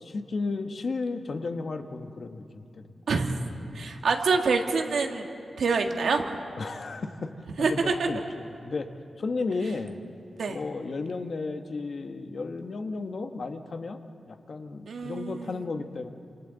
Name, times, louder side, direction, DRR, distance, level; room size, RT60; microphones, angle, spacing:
voice 1, 0.0-2.8 6.6-7.3 7.6-8.9 9.2-10.0 10.5-14.0 14.3-16.1, left 3 dB, 55° left, 7 dB, 1.1 m, -33 dB
voice 2, 3.8-5.2 5.6-6.2 7.6-8.1 10.4-10.6 14.9-15.7, right 4 dB, 90° right, 3 dB, 1.7 m, -26 dB
28.5 x 27.0 x 4.0 m, 2.6 s
wide cardioid pair, 135°, 0 cm